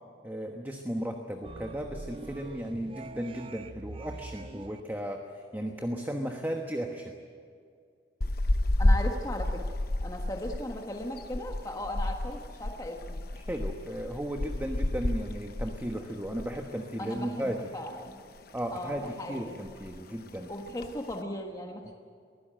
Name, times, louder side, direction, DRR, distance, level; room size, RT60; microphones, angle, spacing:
voice 1, 0.2-5.2 5.5-7.1 13.3-17.7 18.5-20.5 21.9-22.0, equal, 10° right, 3 dB, 1.2 m, -35 dB
sound 1, 1.4-4.8, right 3 dB, 30° right, 0.5 m, -44 dB
sound 2, 8.2-16.7 17.0-17.2 17.6-18.4 18.8-19.1 19.4-19.5 19.6-20.1 20.6-21.1, left 1 dB, 55° left, 1.0 m, -31 dB
voice 2, 8.8-9.7 10.0-13.2 17.0-18.2 18.7-19.6 20.5-21.9, left 1 dB, 20° left, 1 dB, 1.4 m, -37 dB
23.0 x 16.0 x 9.0 m, 2.2 s
head